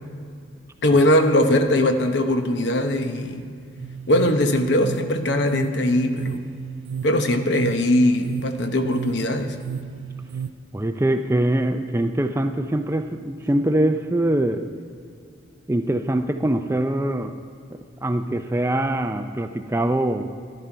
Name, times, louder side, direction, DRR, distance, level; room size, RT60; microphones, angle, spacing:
voice 1, 0.8-3.4 4.1-6.5 7.0-9.6, left 1 dB, 65° left, 7 dB, 0.9 m, -20 dB
sound 1, 3.8-10.5, right 6 dB, 85° right, 0.4 m, -33 dB
voice 2, 10.7-14.7 15.7-17.3 17.7-20.3, right 1 dB, 15° right, 8 dB, 0.4 m, -23 dB
11.5 x 11.0 x 4.5 m, 2.4 s
head